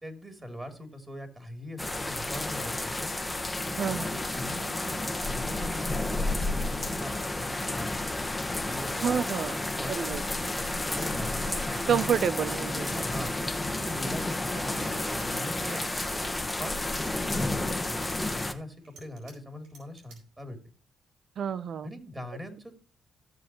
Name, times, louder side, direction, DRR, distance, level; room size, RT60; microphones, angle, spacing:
voice 1, 0.0-3.1 3.8-7.1 7.4-7.9 8.6-9.2 9.7-11.4 12.4-13.3 13.6-15.9 16.6-16.8 17.1-20.6 21.8-22.8, left 1 dB, 15° right, 3.2 m, -42 dB
sound 1, 1.8-18.5, left 2 dB, 10° left, 1.5 m, -31 dB
voice 2, 3.8-4.1 9.0-9.6 9.9-10.2 11.9-12.9 21.4-21.9, right 8 dB, 60° right, 0.7 m, -28 dB
Sawing, 10.9-13.2 13.4-16.2, right 3 dB, 40° right, 1.6 m, -45 dB
sound 2, 11.7-13.3 13.8-14.3 14.7-15.3 15.8-16.5 16.8-17.5 17.9-19.3 19.6-20.2, right 4 dB, 85° right, 4.8 m, -53 dB
15.5 x 7.1 x 3.1 m
cardioid pair, 90°, 0 cm